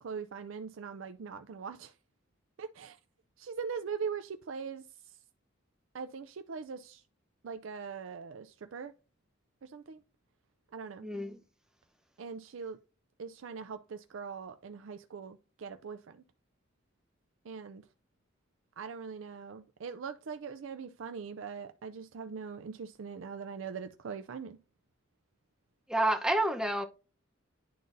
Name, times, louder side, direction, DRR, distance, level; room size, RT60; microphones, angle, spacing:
voice 1, 0.0-1.9 2.6-3.0 3.4-4.8 5.9-7.0 7.4-8.9 9.6-10.0 10.7-11.1 12.2-12.8 13.2-16.2 17.5-17.8 18.8-24.6, right 6 dB, 70° right, 0.4 m, -41 dB
voice 2, 11.0-11.4 25.9-26.8, right 1 dB, 5° right, 0.8 m, -29 dB
11.0 x 3.9 x 2.6 m
head